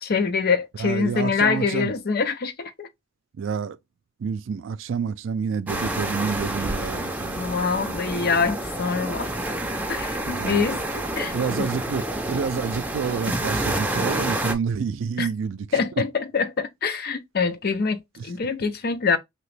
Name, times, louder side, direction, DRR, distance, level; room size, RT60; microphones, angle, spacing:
voice 1, 0.0-2.9 7.3-9.3 9.9-11.7 15.2-15.3 15.7-19.2, left 5 dB, 55° left, 0.5 m, -25 dB
voice 2, 0.8-1.9 3.4-3.8 4.2-7.6 10.3-10.8 11.3-15.8 18.2-18.3, right 6 dB, 85° right, 0.4 m, -28 dB
sound 1, 5.7-14.5, right 1 dB, 10° right, 0.5 m, -28 dB
2.9 x 2.9 x 3.2 m
head